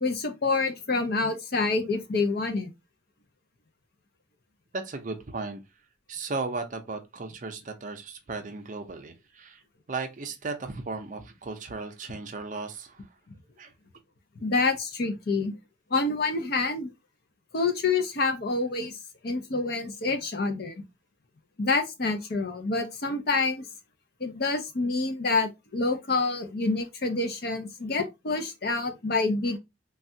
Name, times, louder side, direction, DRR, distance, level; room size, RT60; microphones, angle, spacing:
voice 1, 0.0-2.7 14.4-15.5 15.9-16.9 17.5-19.0 19.2-20.8 21.6-23.7 24.2-29.6, left 3 dB, 50° left, 0.5 m, -27 dB
voice 2, 4.7-5.6 6.1-9.6 9.9-13.0 13.6-13.7, right 3 dB, 40° right, 0.5 m, -36 dB
3.3 x 2.3 x 2.6 m
head